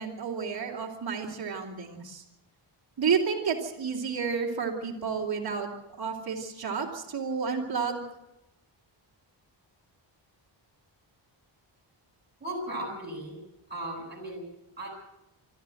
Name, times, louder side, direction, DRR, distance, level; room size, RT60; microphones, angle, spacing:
voice 1, 0.0-2.2 3.0-5.7 6.0-8.0, right 6 dB, 55° right, -2 dB, 3.1 m, -31 dB
voice 2, 12.4-13.4 13.7-14.4 14.8-14.9, right 1 dB, 20° right, -3 dB, 7.9 m, -36 dB
25.5 x 13.0 x 7.8 m, 0.92 s
wide cardioid pair, 155°, 45 cm